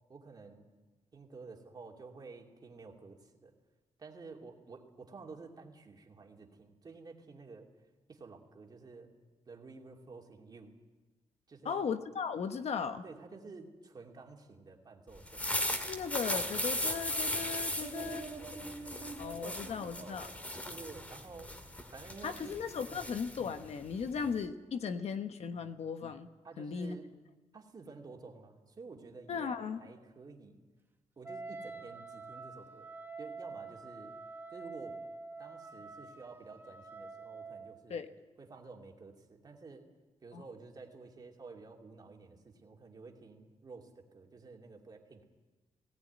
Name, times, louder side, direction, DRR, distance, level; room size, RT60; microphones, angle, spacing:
voice 1, 0.1-0.7 1.1-3.5 4.0-7.7 8.1-9.1 9.5-10.7 11.5-11.9 13.0-15.5 17.8-20.2 20.7-21.5 21.9-22.6 22.9-23.0 25.5-25.7 26.4-27.1 27.5-30.6 31.2-32.9 33.2-34.2 34.5-35.0 35.4-38.0 38.4-39.8 40.2-45.2, right 4 dB, 35° right, 1 dB, 2.7 m, -50 dB
voice 2, 11.6-13.0 15.9-18.2 19.2-20.3 22.2-26.3 26.6-27.0 29.3-29.8 37.9-38.1 40.3-40.4, left 6 dB, 65° left, 8 dB, 1.1 m, -37 dB
sound 1, 15.1-24.4, left 1 dB, 10° left, 1.8 m, -38 dB
Wind instrument woodwind instrument, 31.2-37.9, right 4 dB, 15° right, 1.1 m, -47 dB
19.5 x 17.5 x 9.4 m, 1.2 s
wide cardioid pair, 165°, 12 cm